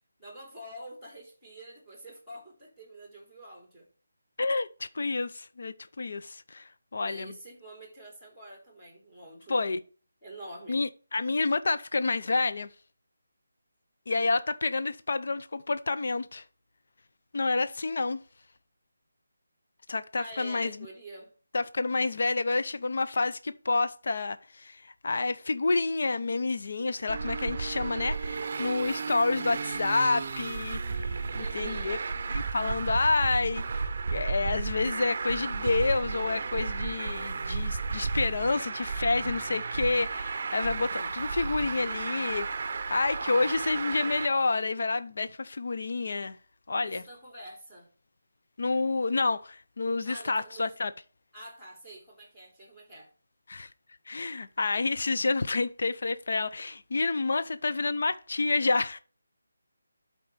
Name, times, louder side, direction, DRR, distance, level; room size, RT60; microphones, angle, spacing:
voice 1, 0.2-3.9 7.0-9.6 10.2-10.8 20.1-21.3 31.4-32.0 46.8-47.9 50.0-50.7 51.3-53.1, right 1 dB, 5° left, 2.9 m, -46 dB
voice 2, 4.4-7.3 9.5-9.8 10.7-12.7 14.1-16.4 17.3-18.2 19.9-20.8 21.5-32.0 32.3-33.8 34.1-42.5 42.9-46.4 46.7-47.0 48.6-50.9 53.5-53.7 54.1-59.0, left 3 dB, 55° left, 0.6 m, -29 dB
Traffic noise roadway noise, 27.1-44.3, right 4 dB, 35° right, 0.7 m, -33 dB
12.0 x 4.4 x 3.3 m
figure-of-eight pair, 170°, 0 cm